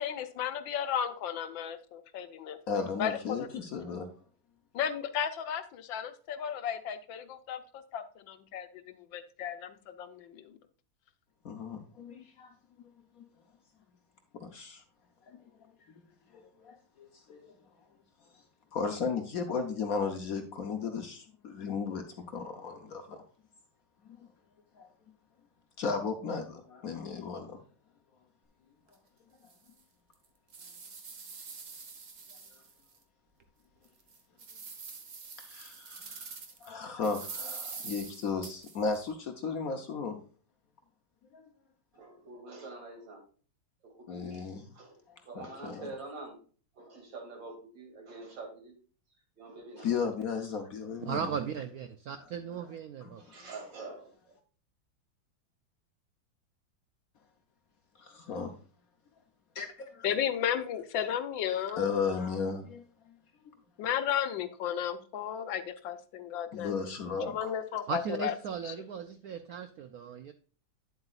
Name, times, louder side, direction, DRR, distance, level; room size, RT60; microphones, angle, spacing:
voice 1, 0.0-3.5 4.7-7.2 7.5-7.6 7.9-10.6 60.0-62.0 63.8-67.0 67.3-68.4 68.6-68.7, left 9 dB, 80° left, 9 dB, 1.5 m, -34 dB
voice 2, 2.7-4.1 11.4-12.5 13.2-13.3 14.3-14.8 15.3-15.4 16.6-17.5 18.7-23.2 24.8-24.9 25.8-27.6 35.4-40.2 41.3-41.4 44.1-44.7 45.4-45.8 49.8-51.3 53.0-53.3 58.0-58.5 59.5-60.1 61.8-62.8 66.5-67.5, left 5 dB, 60° left, 5 dB, 1.0 m, -35 dB
sound 1, 28.9-29.0 29.5-29.6 30.1-33.0 33.4-33.5 34.0-36.7 37.0-39.0, right 5 dB, 45° right, 1.3 m, -45 dB
voice 3, 41.9-43.2 43.8-44.5 44.7-45.0 45.2-46.4 46.7-48.7 49.4-49.9 53.2-54.3, right 3 dB, 65° right, 2 dB, 3.1 m, -46 dB
voice 4, 51.0-53.2 67.9-70.3, right 7 dB, 85° right, 9 dB, 0.8 m, -37 dB
9.7 x 7.8 x 2.4 m, 0.40 s
omnidirectional pair, 2.2 m